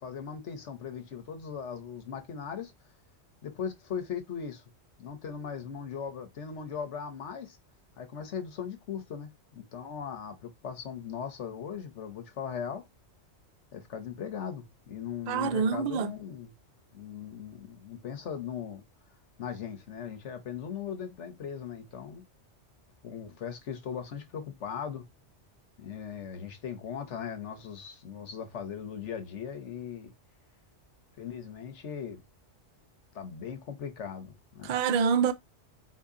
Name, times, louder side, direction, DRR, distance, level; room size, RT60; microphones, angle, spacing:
voice 1, 0.0-2.7 3.4-4.6 5.0-7.6 8.0-12.8 13.7-16.5 16.9-18.8 19.4-22.2 23.0-25.0 25.8-30.1 31.2-32.2 33.1-34.8, left 7 dB, 80° left, 1.2 m, -39 dB
voice 2, 15.3-16.1 34.6-35.3, right 6 dB, 60° right, 0.4 m, -26 dB
4.5 x 2.8 x 3.6 m
omnidirectional pair, 1.2 m